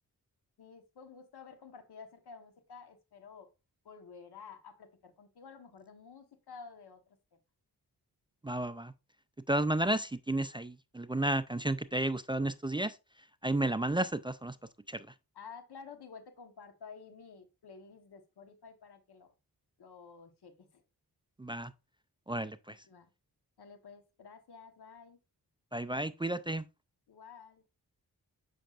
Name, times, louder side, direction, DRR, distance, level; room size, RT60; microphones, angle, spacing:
voice 1, 0.6-3.5 3.8-7.0 15.3-19.3 19.8-20.7 22.9-23.1 23.6-25.2 27.1-27.6, left 5 dB, 85° left, 1.2 m, -51 dB
voice 2, 8.4-8.9 9.5-13.0 13.4-14.6 14.9-15.1 21.4-21.7 22.3-22.8 25.7-26.6, right 1 dB, 15° right, 0.4 m, -32 dB
7.5 x 5.7 x 2.4 m
cardioid pair, 55°, 38 cm